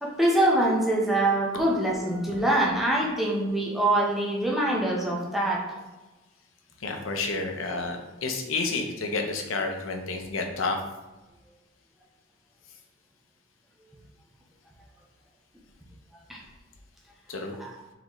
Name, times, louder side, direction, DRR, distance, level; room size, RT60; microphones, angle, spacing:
voice 1, 0.0-5.8 16.3-16.4 17.6-17.8, right 1 dB, ahead, -3 dB, 0.8 m, -24 dB
voice 2, 6.8-10.8 17.3-17.6, left 3 dB, 85° left, 4 dB, 0.7 m, -30 dB
4.0 x 3.9 x 3.0 m, 1.1 s
head